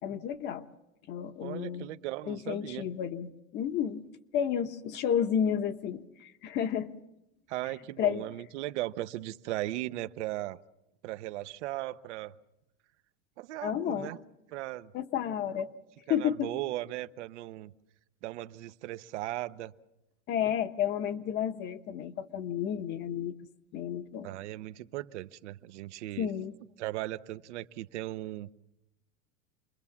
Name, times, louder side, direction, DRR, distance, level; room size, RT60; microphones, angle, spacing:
voice 1, 0.0-0.7 1.1-1.9 2.3-4.1 4.3-6.9 8.0-8.2 13.6-14.1 14.9-15.7 16.1-16.5 20.3-23.3 23.7-24.3 26.2-26.6, left 9 dB, 30° left, 10 dB, 1.1 m, -31 dB
voice 2, 1.4-2.8 7.5-10.6 11.0-12.3 13.4-14.2 14.5-14.9 16.1-17.7 18.2-19.7 24.2-26.3 26.8-28.5, right 16 dB, 75° right, 13 dB, 1.0 m, -37 dB
28.5 x 22.0 x 7.3 m, 0.92 s
supercardioid pair, 170°, 35 cm